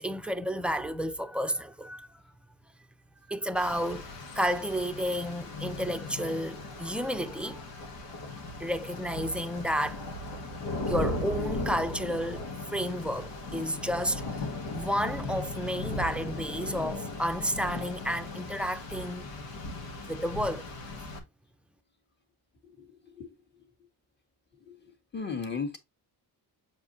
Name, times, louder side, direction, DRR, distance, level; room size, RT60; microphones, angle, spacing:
voice 1, 0.0-2.1 3.3-4.1 4.3-7.6 8.6-10.0 10.9-12.4 12.7-14.4 14.7-19.3 20.0-20.7, equal, 5° right, 0.6 m, -31 dB
Rain, 3.6-21.2, left 2 dB, 90° left, 2.1 m, -37 dB
voice 2, 25.1-25.8, left 5 dB, 25° left, 1.7 m, -34 dB
7.6 x 4.7 x 2.7 m
cardioid pair, 115°, 42 cm